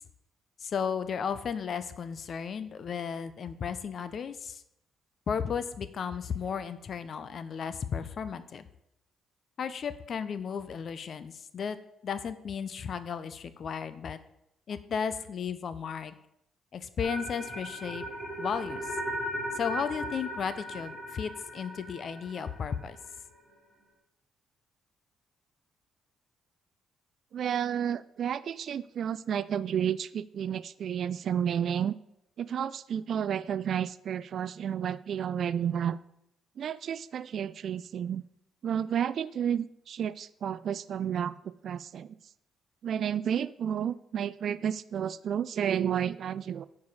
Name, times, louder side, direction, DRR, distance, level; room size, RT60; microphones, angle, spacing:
voice 1, 0.6-4.6 5.3-8.6 9.6-11.8 12.0-14.2 14.7-16.1 16.7-18.0 18.4-18.8 19.6-23.0, left 7 dB, 55° left, 13 dB, 0.6 m, -34 dB
sound 1, 17.0-23.1, equal, 5° left, 3.2 m, -37 dB
voice 2, 27.3-31.9 32.4-36.0 36.6-38.2 38.6-41.3 41.6-42.1 42.8-46.6, right 9 dB, 60° right, 17 dB, 0.3 m, -31 dB
9.4 x 4.8 x 5.5 m, 0.79 s
cardioid pair, 90°, 0 cm